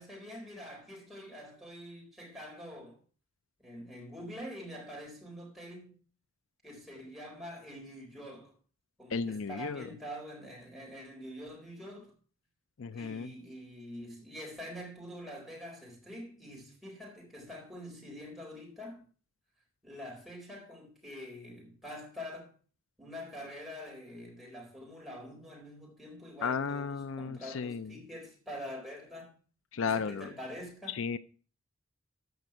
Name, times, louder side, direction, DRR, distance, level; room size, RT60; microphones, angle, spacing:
voice 1, 0.0-3.0 3.6-6.0 6.6-8.6 9.0-12.1 12.9-19.1 19.8-22.5 23.0-29.4 29.8-31.0, equal, ahead, 4.2 m, -45 dB
voice 2, 9.1-9.9 12.8-13.3 26.4-27.9 29.7-30.3 30.9-31.2, left 5 dB, 70° left, 0.5 m, -34 dB
14.5 x 5.3 x 6.0 m
head